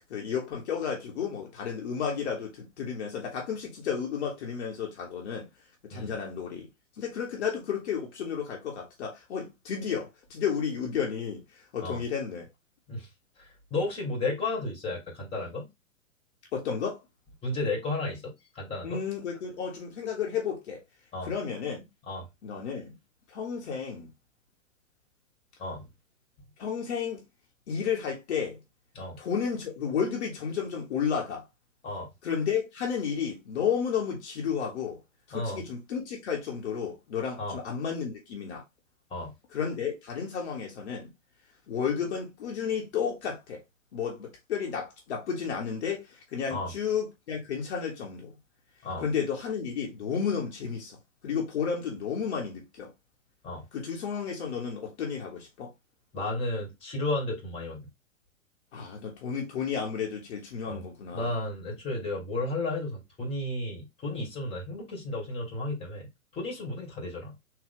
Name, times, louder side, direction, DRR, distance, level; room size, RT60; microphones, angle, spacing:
voice 1, 0.1-5.5 5.9-6.7 7.0-12.5 16.5-17.0 18.8-20.8 21.2-21.8 22.4-22.9 23.3-24.1 26.6-27.2 27.7-28.6 29.2-31.4 32.2-35.0 35.3-38.6 39.5-41.1 41.7-43.6 43.9-48.4 49.0-51.0 51.2-52.9 53.7-55.7 58.7-61.3, left 7 dB, 50° left, 1.3 m, -32 dB
voice 2, 13.4-15.7 17.4-19.0 21.1-21.3 22.1-22.3 25.6-25.9 28.9-29.2 31.8-32.1 35.3-35.6 37.4-37.5 39.1-39.3 46.5-46.7 48.8-49.0 53.4-53.6 56.1-57.9 60.7-60.8 61.1-67.3, left 2 dB, 15° left, 1.8 m, -33 dB
3.8 x 2.6 x 3.7 m
figure-of-eight pair, 115°, 41 cm